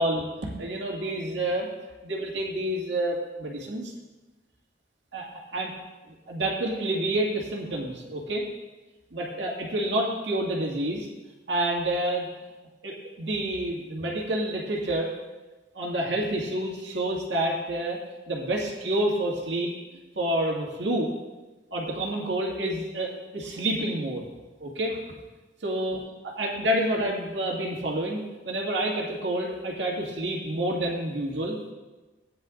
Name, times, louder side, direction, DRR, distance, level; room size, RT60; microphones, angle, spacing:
voice 1, 0.0-1.7 2.0-3.9 5.1-5.3 5.5-5.7 6.3-8.5 9.1-11.1 11.5-12.3 12.8-15.1 15.7-18.0 18.3-19.7 20.2-21.1 21.7-24.2 24.6-25.0 25.6-26.0 26.2-31.6, right 1 dB, 70° right, -2 dB, 2.1 m, -28 dB
17.5 x 9.9 x 2.5 m, 1.2 s
head